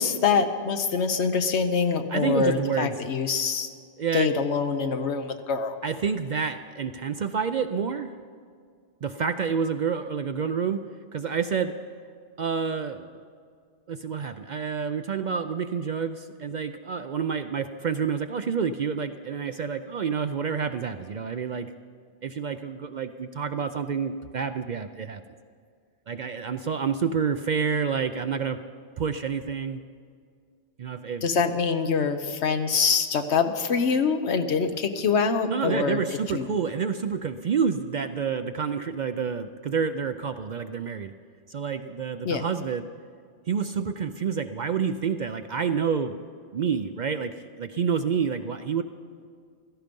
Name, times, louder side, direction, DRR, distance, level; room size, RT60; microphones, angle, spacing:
voice 1, 0.0-3.7 4.1-5.7 31.2-36.0 36.3-36.6 42.2-42.4, left 5 dB, 70° left, 8 dB, 1.2 m, -25 dB
voice 2, 2.1-2.9 4.0-4.3 5.8-8.1 9.0-10.8 11.1-11.8 12.4-13.1 13.9-21.7 22.2-25.2 26.1-28.6 29.0-29.8 30.8-31.2 35.5-41.1 41.5-42.8 43.5-46.2 46.5-48.8, right 6 dB, 60° right, 9 dB, 0.5 m, -28 dB
16.5 x 13.5 x 5.3 m, 2.1 s
omnidirectional pair, 1.2 m